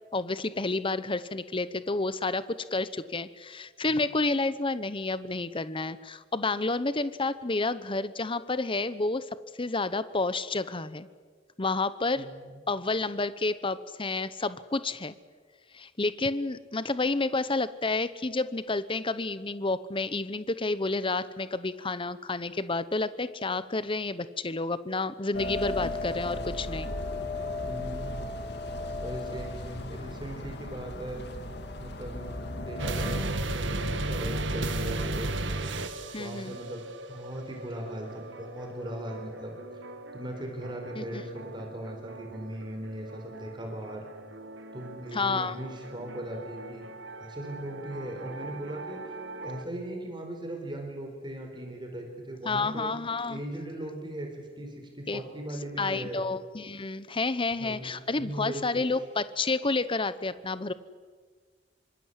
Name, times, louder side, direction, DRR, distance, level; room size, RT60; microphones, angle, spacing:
voice 1, 0.1-9.3 9.6-11.1 11.6-12.3 12.7-15.1 15.7-26.9 36.1-36.6 41.0-41.2 45.1-45.6 52.4-53.4 55.1-55.2 55.8-60.7, left 3 dB, 30° left, 14 dB, 0.9 m, -30 dB
voice 2, 12.2-12.5 27.6-28.2 29.0-31.2 31.8-35.3 36.2-36.8 37.1-39.8 40.1-44.0 44.7-46.9 47.2-49.0 49.4-52.9 53.3-56.2 57.6-58.8, right 1 dB, 25° right, 2 dB, 4.9 m, -39 dB
sound 1, 25.3-33.2, left 2 dB, 65° left, 2.3 m, -36 dB
sound 2, 32.8-49.7, right 2 dB, 85° right, 2.0 m, -37 dB
26.5 x 25.0 x 8.3 m, 1.5 s
head